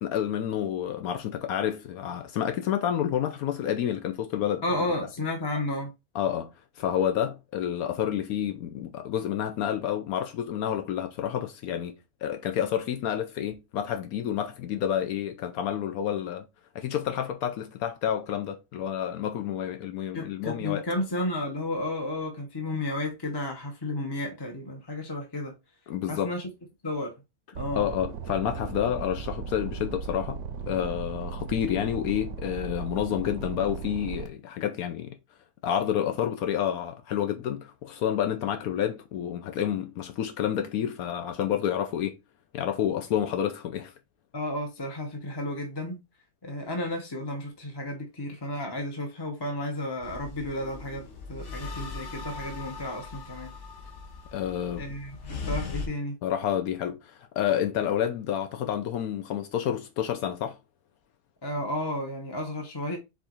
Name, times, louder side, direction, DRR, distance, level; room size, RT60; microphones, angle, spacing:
voice 1, 0.0-4.6 6.1-11.9 12.2-16.5 16.7-20.9 25.9-26.3 27.7-30.4 30.7-35.1 35.6-42.2 42.5-43.9 54.3-54.9 56.2-60.6, left 10 dB, 80° left, 1.1 m, -29 dB
voice 2, 4.6-5.9 20.1-25.6 26.1-26.5 26.8-27.2 27.5-27.9 44.3-46.0 46.4-53.5 54.8-56.2 61.4-63.0, left 1 dB, 25° left, 0.6 m, -32 dB
sound 1, 27.6-34.3, right 6 dB, 75° right, 1.1 m, -37 dB
sound 2, 50.0-55.9, left 4 dB, 55° left, 1.2 m, -39 dB
4.6 x 2.5 x 4.3 m
omnidirectional pair, 1.5 m